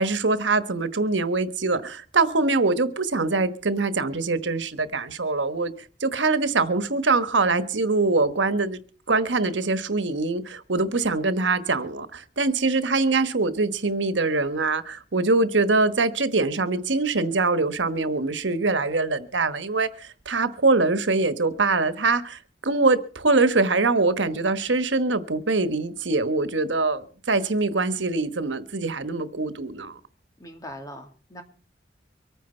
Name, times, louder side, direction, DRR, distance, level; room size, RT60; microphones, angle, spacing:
voice 1, 0.0-5.7 6.0-8.8 9.1-30.0, right 3 dB, 90° right, 1.3 m, -23 dB
voice 2, 30.4-31.4, equal, 20° left, 2.3 m, -40 dB
24.5 x 9.4 x 4.4 m
head